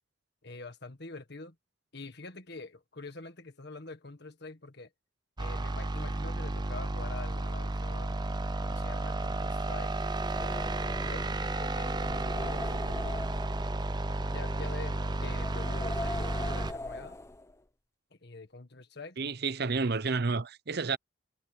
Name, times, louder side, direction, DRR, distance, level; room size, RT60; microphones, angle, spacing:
voice 1, 0.4-1.6 1.9-4.9 5.4-8.2 8.6-9.9 10.4-13.3 14.3-17.2 18.1-19.2, left 3 dB, 60° left, 1.7 m, -46 dB
sound 1, 5.4-16.7, right 2 dB, 20° right, 0.7 m, -32 dB
sound 2, 10.0-17.6, left 1 dB, 15° left, 0.9 m, -41 dB
voice 2, 19.2-21.0, right 4 dB, 55° right, 0.8 m, -30 dB
head